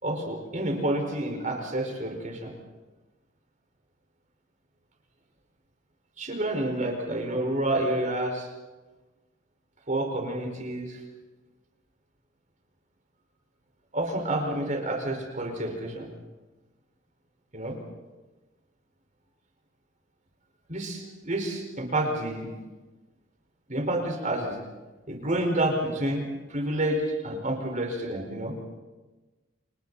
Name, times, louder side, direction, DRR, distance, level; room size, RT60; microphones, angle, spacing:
voice 1, 0.0-2.5 6.2-8.5 9.9-11.0 13.9-16.1 17.5-17.8 20.7-22.5 23.7-24.6 25.1-26.2 26.5-28.6, right 1 dB, 40° right, 2 dB, 4.9 m, -29 dB
29.5 x 29.5 x 4.2 m, 1.2 s
head